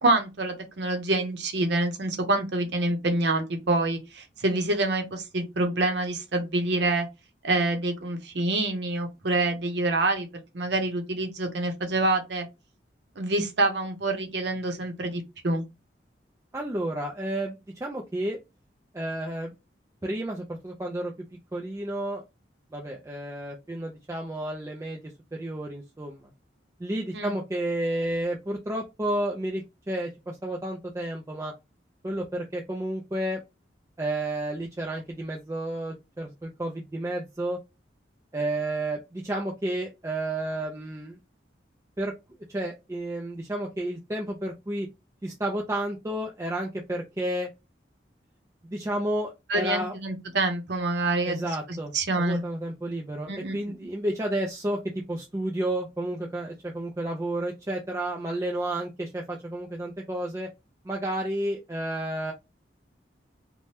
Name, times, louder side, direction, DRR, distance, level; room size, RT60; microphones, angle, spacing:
voice 1, 0.0-7.1 7.4-10.3 10.5-12.5 13.2-15.7 27.1-27.3 49.5-51.4 51.9-52.4 53.3-53.6, right 2 dB, 70° right, 0.7 m, -26 dB
voice 2, 16.5-18.4 18.9-19.5 20.0-21.1 21.5-22.2 22.7-26.3 26.8-31.5 32.0-33.4 34.0-37.6 38.3-41.2 42.0-42.1 42.5-44.9 45.2-47.5 48.6-49.9 51.3-54.8 55.1-60.5 60.8-62.3, right 1 dB, 15° right, 0.4 m, -31 dB
2.7 x 2.1 x 3.2 m
head